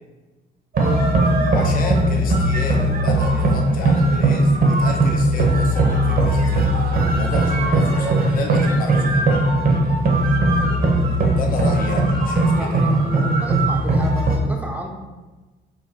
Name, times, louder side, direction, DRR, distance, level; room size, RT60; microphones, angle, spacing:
sound 1, 0.7-14.4, right 1 dB, 45° right, 0.7 m, -18 dB
voice 1, 1.5-9.4 11.3-13.0, left 3 dB, 45° left, 3 dB, 0.4 m, -32 dB
voice 2, 10.4-10.8 11.6-12.0 12.5-14.9, right 1 dB, 10° right, 1 dB, 0.5 m, -32 dB
3.6 x 2.2 x 2.7 m, 1.2 s
cardioid pair, 90°, 20 cm